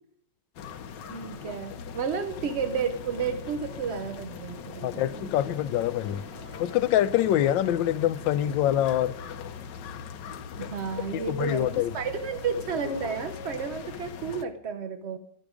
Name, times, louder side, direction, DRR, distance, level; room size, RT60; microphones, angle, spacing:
sound 1, 0.6-14.4, left 6 dB, 75° left, 1.5 m, -41 dB
voice 1, 1.1-5.3 10.6-15.2, right 6 dB, 60° right, 0.7 m, -32 dB
sound 2, 1.9-9.0, right 3 dB, 90° right, 4.2 m, -52 dB
voice 2, 4.8-6.2 6.6-9.1 11.1-12.0, left 12 dB, 90° left, 1.4 m, -25 dB
sound 3, 12.8-13.5, left 3 dB, 10° right, 2.1 m, -47 dB
13.0 x 10.5 x 5.0 m
omnidirectional pair, 2.0 m